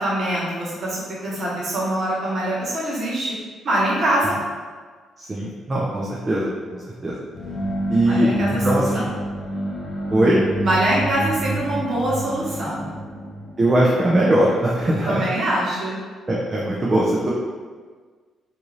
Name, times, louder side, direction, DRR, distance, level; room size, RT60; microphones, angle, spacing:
voice 1, 0.0-3.3 3.6-4.3 8.1-8.8 10.6-12.9 15.0-16.0, right 1 dB, 55° right, -6 dB, 1.1 m, -24 dB
voice 2, 5.2-7.2 7.9-8.3 8.6-9.1 10.1-10.4 13.6-15.2 16.3-17.3, right 1 dB, 25° right, -5 dB, 0.5 m, -20 dB
sound 1, 7.3-15.1, right 1 dB, 35° left, 0.6 m, -28 dB
2.7 x 2.5 x 3.1 m, 1.5 s
cardioid pair, 90°, 0 cm